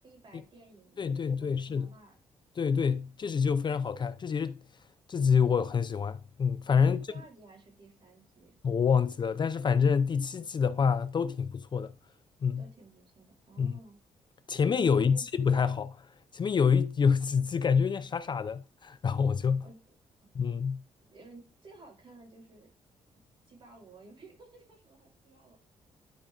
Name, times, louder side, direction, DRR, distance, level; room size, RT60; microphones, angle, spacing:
voice 1, 0.0-2.1 6.8-8.6 12.6-14.0 14.9-15.5 19.6-19.8 21.1-22.7 23.5-25.6, right 3 dB, 40° right, 5.6 m, -54 dB
voice 2, 1.0-1.9 2.6-4.6 5.1-7.1 8.6-11.9 12.4-12.6 13.6-13.7 14.5-16.1 16.3-19.6 20.3-20.8, left 6 dB, 40° left, 0.5 m, -27 dB
11.5 x 4.9 x 3.8 m
cardioid pair, 95°, 12 cm